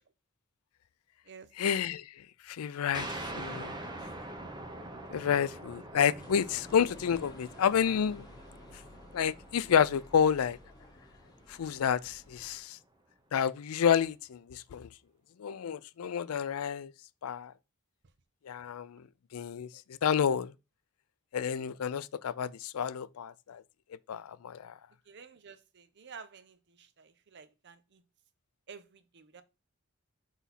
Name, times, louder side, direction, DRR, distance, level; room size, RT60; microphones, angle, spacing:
voice 1, 1.6-2.0 2.5-3.8 5.1-8.2 9.1-10.6 11.5-12.8 13.3-14.9 15.4-16.9 17.2-17.5 18.5-19.0 19.3-19.7 20.0-20.5 21.3-23.6 24.1-24.7, left 8 dB, 80° left, 0.4 m, -29 dB
sound 1, 2.9-12.2, right 1 dB, 20° right, 0.9 m, -44 dB
sound 2, 6.2-12.6, left 2 dB, 20° left, 1.1 m, -53 dB
voice 2, 25.1-28.0 28.7-29.4, right 6 dB, 55° right, 0.6 m, -51 dB
6.1 x 4.1 x 4.1 m
head